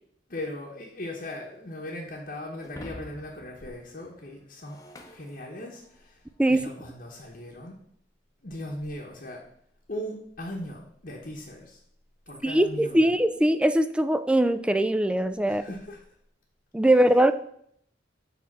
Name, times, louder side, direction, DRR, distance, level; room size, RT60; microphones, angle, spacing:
voice 1, 0.3-4.8 5.0-6.2 6.5-7.8 8.4-9.4 9.9-11.8 12.3-13.2 15.4-16.0 16.9-17.1, left 1 dB, 50° left, -2 dB, 1.0 m, -38 dB
Shatter, 2.6-6.1, left 1 dB, 20° left, 0.8 m, -47 dB
voice 2, 12.4-15.6 16.7-17.3, right 1 dB, 5° right, 11 dB, 0.3 m, -21 dB
7.2 x 3.5 x 6.0 m, 0.69 s
head